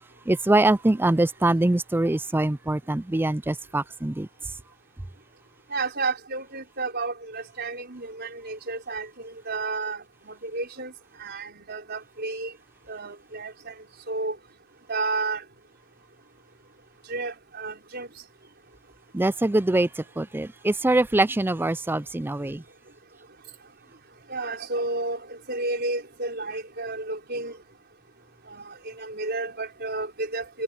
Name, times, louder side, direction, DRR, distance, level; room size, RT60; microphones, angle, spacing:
voice 1, 0.3-4.3 19.1-22.6, right 2 dB, 10° right, 0.4 m, -23 dB
voice 2, 5.7-10.9 11.2-12.5 12.9-13.7 14.1-14.4 14.9-15.4 17.1-18.1 24.3-27.6 28.5-30.6, right 3 dB, 50° right, 5.1 m, -31 dB
head